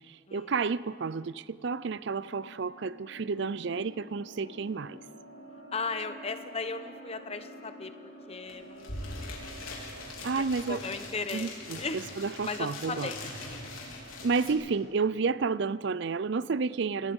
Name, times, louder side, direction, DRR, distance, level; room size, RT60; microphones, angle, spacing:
voice 1, 0.1-5.0 10.2-10.8 11.3-11.8 12.2-13.1 14.2-17.1, right 4 dB, 55° right, 18 dB, 0.5 m, -31 dB
sound 1, 2.1-14.8, equal, 65° left, 4.6 m, -49 dB
voice 2, 5.7-12.0 12.4-13.7, left 4 dB, 30° left, 9 dB, 0.9 m, -38 dB
sound 2, 8.5-8.6 8.8-14.5, left 2 dB, 85° left, 4.2 m, -42 dB
27.5 x 18.0 x 5.4 m, 2.3 s
head